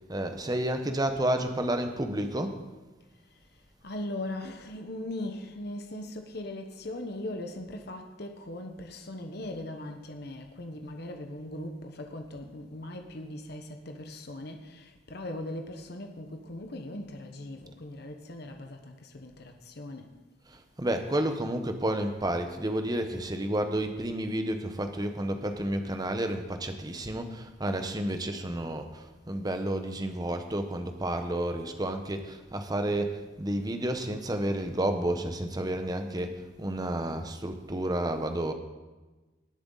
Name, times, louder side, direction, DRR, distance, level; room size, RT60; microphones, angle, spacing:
voice 1, 0.1-2.6 20.5-38.5, right 1 dB, 20° right, 0.9 m, -31 dB
voice 2, 3.3-20.2, left 1 dB, 55° left, 1.0 m, -39 dB
19.0 x 7.7 x 3.9 m
head